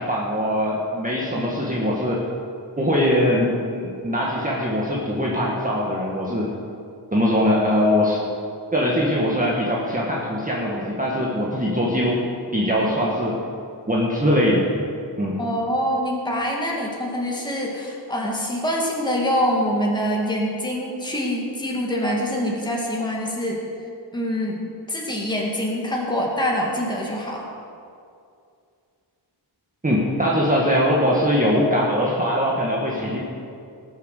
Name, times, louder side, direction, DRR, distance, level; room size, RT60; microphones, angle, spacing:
voice 1, 0.0-2.2 2.8-6.5 7.1-8.2 8.7-12.2 12.5-13.4 13.9-14.6 15.2-15.4 29.8-33.2, equal, 20° right, -4 dB, 1.7 m, -21 dB
voice 2, 15.4-23.6 24.1-24.6 24.9-27.5, equal, 10° left, -2 dB, 2.1 m, -25 dB
19.0 x 7.3 x 6.6 m, 2.4 s
wide cardioid pair, 145°, 45 cm